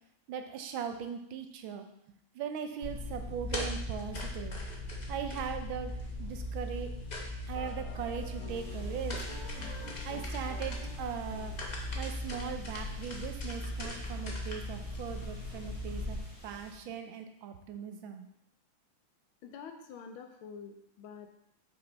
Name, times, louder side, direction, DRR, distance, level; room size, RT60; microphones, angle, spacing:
voice 1, 0.3-1.9 2.3-4.6 5.1-5.9 6.2-6.9 7.5-9.2 10.0-11.5 11.9-16.2 16.4-18.3, right 7 dB, 80° right, 6 dB, 1.4 m, -39 dB
sound 1, 2.8-16.2, left 1 dB, 65° left, 0.4 m, -38 dB
sound 2, 7.5-12.8, equal, 55° right, 2.5 m, -50 dB
sound 3, 8.5-16.7, left 1 dB, 20° right, 1.3 m, -52 dB
voice 2, 19.4-21.3, left 6 dB, 85° left, 5 dB, 1.6 m, -47 dB
5.9 x 5.4 x 4.0 m, 0.77 s
omnidirectional pair, 2.3 m